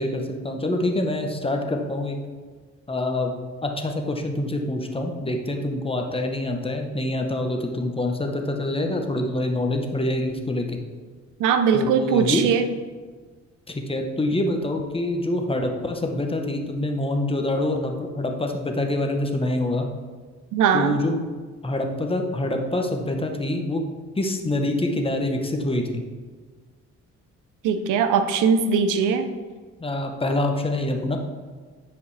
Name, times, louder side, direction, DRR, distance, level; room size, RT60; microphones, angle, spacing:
voice 1, 0.0-2.2 2.9-3.3 3.6-10.8 11.7-12.4 13.7-19.9 20.7-21.2 21.6-23.8 24.2-26.0 29.8-31.2, left 1 dB, 20° left, 3 dB, 0.9 m, -26 dB
voice 2, 11.4-12.7 20.5-21.0 27.6-29.3, right 6 dB, 85° right, 9 dB, 0.6 m, -20 dB
9.9 x 5.1 x 3.3 m, 1.5 s
cardioid pair, 90°, 30 cm